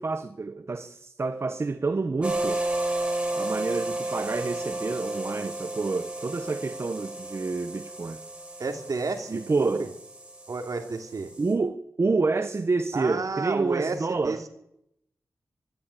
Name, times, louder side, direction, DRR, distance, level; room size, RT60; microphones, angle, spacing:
voice 1, 0.0-2.6 3.3-8.2 9.3-9.9 11.4-14.5, right 3 dB, 40° right, 1.0 m, -28 dB
sound 1, 2.2-11.5, right 2 dB, 15° right, 4.6 m, -33 dB
voice 2, 8.6-9.9 10.5-11.3 12.9-14.4, right 4 dB, 55° right, 3.1 m, -31 dB
24.0 x 12.0 x 9.9 m
wide cardioid pair, 110°, 7 cm